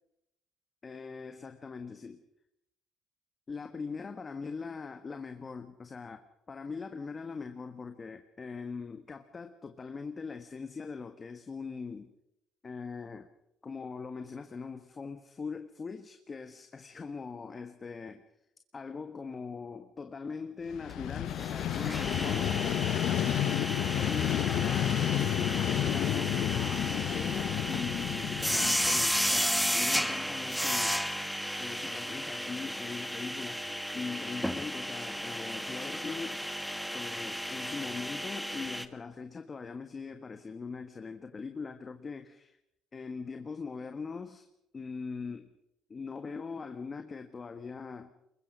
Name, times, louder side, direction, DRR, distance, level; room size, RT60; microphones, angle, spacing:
voice 1, 0.8-2.2 3.5-12.1 12.6-13.3 13.6-18.2 18.7-22.7 23.1-23.7 24.0-31.0 31.6-36.4 36.9-42.6 42.9-44.5 44.7-45.5 45.9-48.1, left 5 dB, 35° left, 7 dB, 1.4 m, -41 dB
Vehicle, 20.7-29.7, left 12 dB, 75° left, 0.8 m, -31 dB
sound 1, 20.9-21.0 21.2-38.9, equal, ahead, 1.5 m, -33 dB
24.0 x 21.5 x 5.5 m, 0.84 s
supercardioid pair, 80°, 0 cm